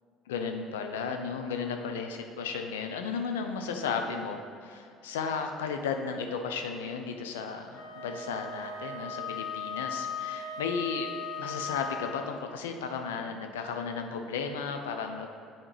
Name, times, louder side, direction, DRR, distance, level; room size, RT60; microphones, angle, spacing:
voice 1, 0.3-11.1 11.4-15.3, left 5 dB, 85° left, 5 dB, 0.5 m, -34 dB
Wind instrument woodwind instrument, 7.7-12.3, left 5 dB, 55° left, 0.8 m, -37 dB
8.9 x 4.3 x 3.3 m, 2.3 s
hypercardioid pair, 65°, 0 cm